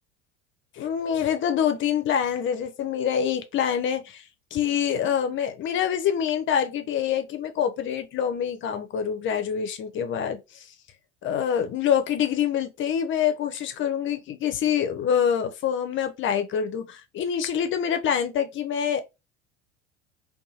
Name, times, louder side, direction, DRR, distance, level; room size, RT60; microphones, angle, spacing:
voice 1, 0.7-10.7 11.2-19.0, left 8 dB, 35° left, 0.5 m, -26 dB
2.6 x 2.2 x 2.7 m
hypercardioid pair, 75°, 35 cm